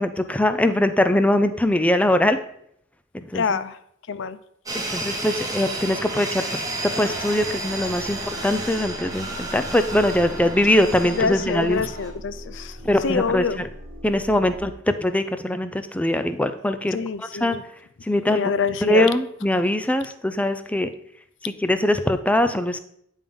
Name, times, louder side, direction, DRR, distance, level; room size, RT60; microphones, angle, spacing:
voice 1, 0.0-2.4 3.1-3.6 4.7-6.6 7.0-11.8 12.8-13.4 14.0-14.7 15.0-17.0 17.4-17.6 18.1-18.5 18.9-20.9 21.6-22.8, left 1 dB, 5° left, 9 dB, 0.4 m, -22 dB
voice 2, 3.3-3.8 4.1-4.4 11.1-13.6 16.9-17.6 18.3-19.1, left 5 dB, 65° left, 14 dB, 0.5 m, -26 dB
sound 1, 4.7-12.1, right 2 dB, 20° right, 1.5 m, -31 dB
sound 2, 6.7-14.7, equal, 50° right, 1.3 m, -42 dB
9.4 x 3.6 x 5.2 m, 0.70 s
head